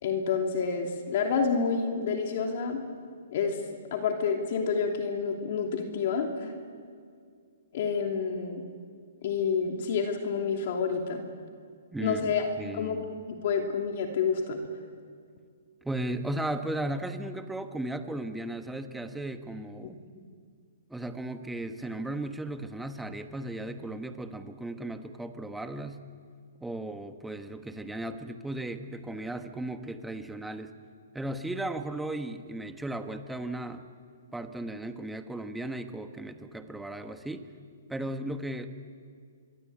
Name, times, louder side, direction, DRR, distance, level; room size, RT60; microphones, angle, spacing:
voice 1, 0.0-2.8 3.3-3.6 3.9-6.5 7.7-8.6 9.2-11.2 12.0-12.5 12.7-13.0 13.3-14.6, left 5 dB, 50° left, 3 dB, 2.9 m, -28 dB
voice 2, 11.9-13.2 15.8-20.0 20.9-26.0 26.6-30.7 31.1-33.8 34.3-37.5 37.9-38.7, right 1 dB, 5° right, 7 dB, 1.3 m, -36 dB
26.0 x 23.0 x 8.7 m, 2.1 s
hypercardioid pair, 155°, 0 cm